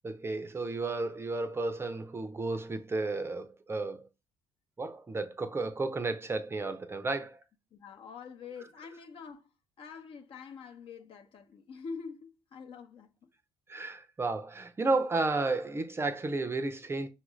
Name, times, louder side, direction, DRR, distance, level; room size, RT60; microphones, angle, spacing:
voice 1, 0.0-4.1 4.8-7.4 13.7-17.1, right 3 dB, 20° right, 0.5 m, -32 dB
voice 2, 7.7-9.5 9.8-13.3, left 5 dB, 55° left, 0.8 m, -45 dB
5.6 x 2.4 x 3.1 m
supercardioid pair, 80°, 11 cm